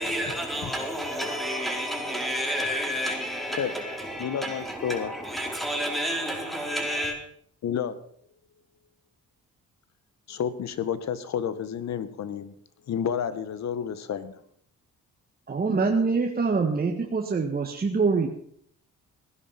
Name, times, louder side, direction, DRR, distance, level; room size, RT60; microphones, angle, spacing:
voice 1, 0.0-7.2, equal, ahead, 4.6 m, -30 dB
voice 2, 4.2-5.1 7.6-8.0 10.3-12.5 12.9-14.4, left 8 dB, 60° left, 1.5 m, -30 dB
voice 3, 15.5-18.3, right 4 dB, 30° right, 1.7 m, -24 dB
16.5 x 10.5 x 5.9 m
cardioid pair, 90°, 30 cm